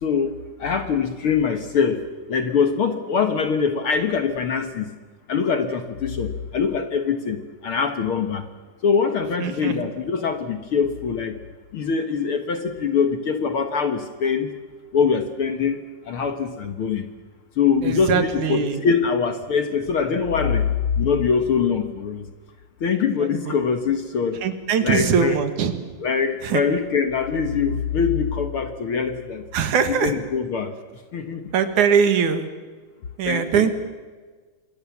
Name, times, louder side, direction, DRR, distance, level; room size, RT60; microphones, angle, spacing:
voice 1, 0.0-4.9 5.3-8.5 8.8-11.4 11.7-14.5 14.9-15.8 16.1-17.1 17.6-22.3 22.8-24.4 24.8-25.4 26.0-29.4 29.9-31.5 33.3-33.7, left 6 dB, 55° left, 8 dB, 1.8 m, -23 dB
voice 2, 9.4-9.8 17.8-18.8 24.4-25.7 26.4-26.6 29.5-30.1 31.5-32.5 33.2-33.7, right 7 dB, 75° right, 9 dB, 3.2 m, -21 dB
26.5 x 22.0 x 7.3 m, 1.4 s
omnidirectional pair, 3.6 m